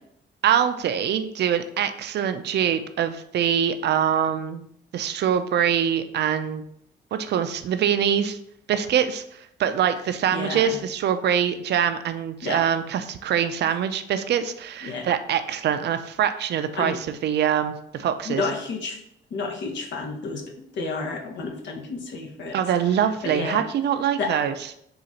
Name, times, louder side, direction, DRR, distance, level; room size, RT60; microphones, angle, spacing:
voice 1, 0.4-4.7 4.9-6.6 7.1-8.4 8.7-18.4 22.5-24.5, right 9 dB, 60° right, 9 dB, 0.4 m, -24 dB
voice 2, 10.3-10.8 12.4-12.6 14.8-15.1 16.7-17.0 18.2-19.0 19.3-20.4 20.7-22.6 22.9-23.6 24.2-24.4, left 4 dB, 65° left, 1 dB, 0.9 m, -31 dB
3.8 x 2.4 x 4.1 m, 0.72 s
cardioid pair, 90°, 20 cm